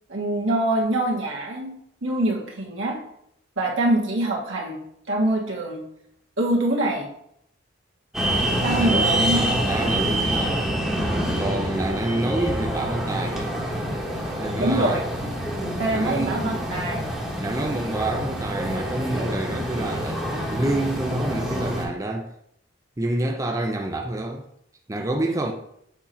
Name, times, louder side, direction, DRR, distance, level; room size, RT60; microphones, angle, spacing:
voice 1, 0.1-3.0 3.6-4.8 5.1-5.8 6.4-7.1 8.6-9.4 14.6-15.0 15.8-17.0, right 1 dB, 85° right, 1.5 m, -24 dB
sound 1, 8.1-21.9, right 1 dB, ahead, 1.2 m, -26 dB
voice 2, 8.6-10.7 11.4-13.6 14.4-15.0 15.9-16.5 17.4-22.3 23.0-24.4 24.9-25.5, right 1 dB, 15° right, 0.5 m, -28 dB
7.0 x 2.9 x 5.0 m
head